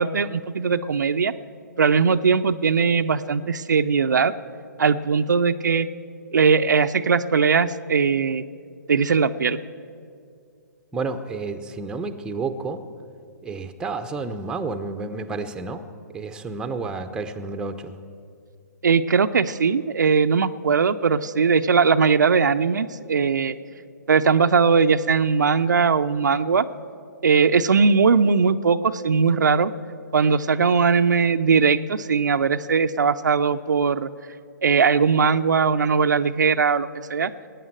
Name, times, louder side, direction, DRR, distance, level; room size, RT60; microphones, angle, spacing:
voice 1, 0.0-1.3 1.8-4.3 4.8-5.9 6.3-8.4 8.9-9.6 18.8-23.6 24.1-26.7 27.2-29.7 30.1-34.1 34.6-37.3, right 5 dB, 75° right, 9 dB, 0.6 m, -20 dB
voice 2, 10.9-12.8 13.4-15.9 16.1-17.9, right 3 dB, 10° right, 7 dB, 0.8 m, -30 dB
20.0 x 9.3 x 7.7 m, 2.3 s
figure-of-eight pair, 125°, 10 cm